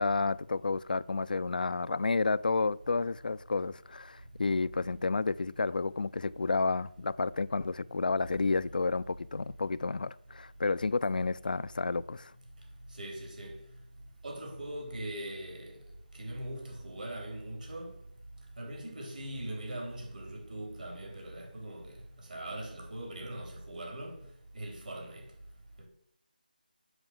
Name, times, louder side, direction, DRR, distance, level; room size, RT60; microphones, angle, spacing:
voice 1, 0.0-12.3, left 3 dB, 60° left, 0.4 m, -31 dB
voice 2, 12.9-13.6 14.2-15.8 16.2-17.9 18.6-21.9 22.3-24.2 24.5-25.2, right 1 dB, 60° right, 3.9 m, -41 dB
8.0 x 6.1 x 7.3 m
figure-of-eight pair, 170°, 5 cm